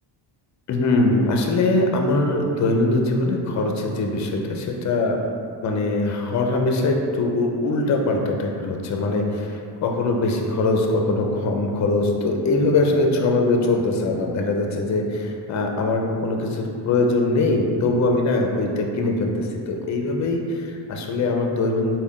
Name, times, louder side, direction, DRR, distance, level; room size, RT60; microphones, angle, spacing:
voice 1, 0.7-5.2 5.6-22.0, left 2 dB, 40° left, 2 dB, 0.5 m, -22 dB
3.4 x 2.3 x 3.6 m, 2.3 s
cardioid pair, 80°, 47 cm